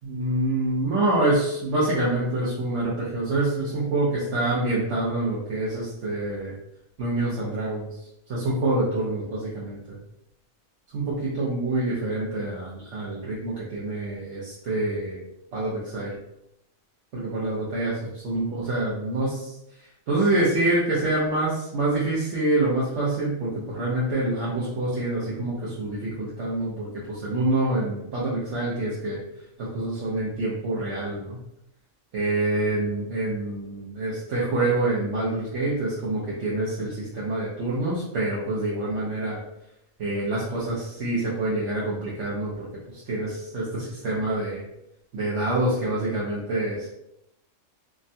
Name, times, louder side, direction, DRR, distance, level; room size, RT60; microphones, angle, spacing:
voice 1, 0.0-6.5 7.0-8.0 8.3-10.0 10.9-15.2 15.5-16.1 17.1-19.5 20.1-29.2 29.6-31.4 32.1-39.4 40.0-44.6 45.1-46.9, right 2 dB, 70° right, -6 dB, 1.0 m, -26 dB
3.5 x 2.1 x 2.6 m, 0.82 s
omnidirectional pair, 1.3 m